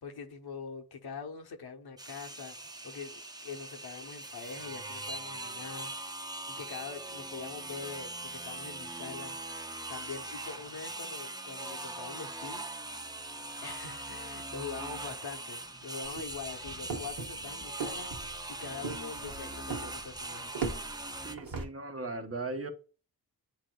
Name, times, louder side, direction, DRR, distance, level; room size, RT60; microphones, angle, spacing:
voice 1, 0.0-5.9 6.5-9.4 9.9-12.7 13.6-20.5, left 5 dB, 85° left, 0.9 m, -44 dB
sound 1, 2.0-21.3, right 2 dB, 10° right, 0.5 m, -41 dB
sound 2, 16.0-21.7, right 4 dB, 75° right, 1.1 m, -39 dB
voice 2, 21.2-22.7, right 3 dB, 40° right, 0.9 m, -38 dB
7.9 x 3.0 x 2.2 m
cardioid pair, 50°, 38 cm